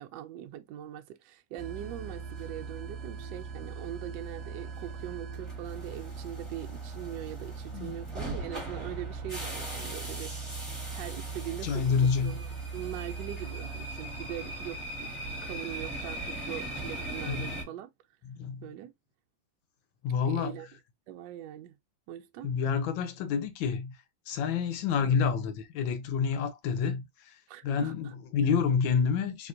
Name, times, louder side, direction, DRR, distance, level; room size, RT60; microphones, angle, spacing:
voice 1, 0.0-12.0 12.2-17.9 18.6-18.9 20.3-20.7 21.1-21.7 22.1-22.5 27.5-28.1, right 12 dB, 75° right, 1.1 m, -41 dB
sound 1, 1.6-17.6, right 3 dB, ahead, 1.2 m, -38 dB
voice 2, 11.6-12.4 17.3-17.6 18.2-18.7 20.0-20.6 22.4-24.0 24.3-27.4 27.6-29.5, left 6 dB, 80° left, 1.5 m, -28 dB
3.6 x 2.8 x 2.5 m
omnidirectional pair, 2.1 m